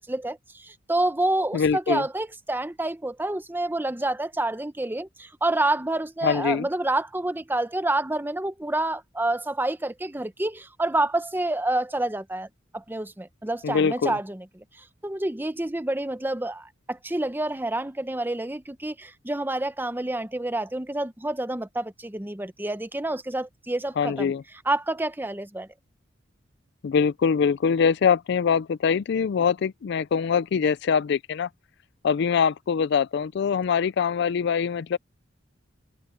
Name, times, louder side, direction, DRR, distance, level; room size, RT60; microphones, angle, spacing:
voice 1, 0.0-12.5 12.7-24.3 24.7-25.7, right 2 dB, 10° right, 0.8 m, -28 dB
voice 2, 1.5-2.0 6.2-6.7 13.6-14.2 24.0-24.4 26.8-31.5 32.0-35.0, left 6 dB, 60° left, 0.4 m, -23 dB
head